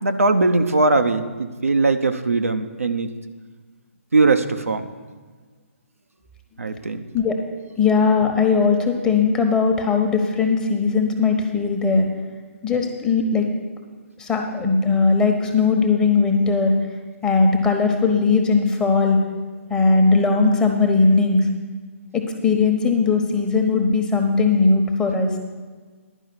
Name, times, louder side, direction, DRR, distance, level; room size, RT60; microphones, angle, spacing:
voice 1, 0.0-3.1 4.1-4.9 6.6-7.0, right 3 dB, 75° right, 7 dB, 0.7 m, -20 dB
voice 2, 7.8-12.1 12.6-13.5 14.2-16.7 17.2-19.2 19.7-21.5 22.1-25.3, left 4 dB, 10° left, 2 dB, 1.1 m, -19 dB
11.0 x 5.4 x 8.5 m, 1.4 s
figure-of-eight pair, 135°, 8 cm